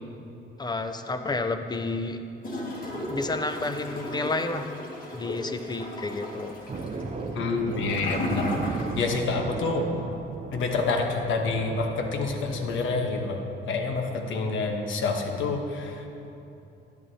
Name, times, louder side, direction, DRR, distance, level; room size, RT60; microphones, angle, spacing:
voice 1, 0.6-2.2 3.1-4.7 5.1-6.5, left 3 dB, 20° left, 7 dB, 0.6 m, -30 dB
Gurgling / Toilet flush, 2.4-9.3 9.6-9.7, left 1 dB, 45° left, 1.8 m, -35 dB
sound 1, 6.7-13.0, right 3 dB, 35° right, 0.6 m, -36 dB
voice 2, 7.3-9.9 10.5-16.1, left 3 dB, 80° left, 3 dB, 1.1 m, -28 dB
10.5 x 10.5 x 2.8 m, 2.8 s
cardioid pair, 90°, 20 cm